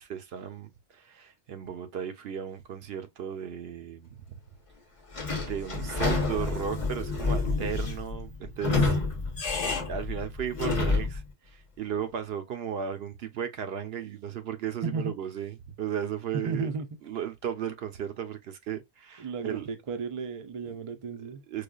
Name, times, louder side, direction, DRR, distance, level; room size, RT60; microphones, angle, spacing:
voice 1, 0.0-4.4 5.4-8.9 9.6-16.7 17.0-19.7 20.7-20.8 21.5-21.6, right 8 dB, 70° right, 0.9 m, -35 dB
Sliding door / Squeak, 5.1-11.2, left 3 dB, 35° left, 0.8 m, -29 dB
voice 2, 14.8-15.1 16.4-16.9 19.2-21.4, right 4 dB, 40° right, 0.5 m, -34 dB
4.8 x 2.3 x 2.2 m
omnidirectional pair, 1.1 m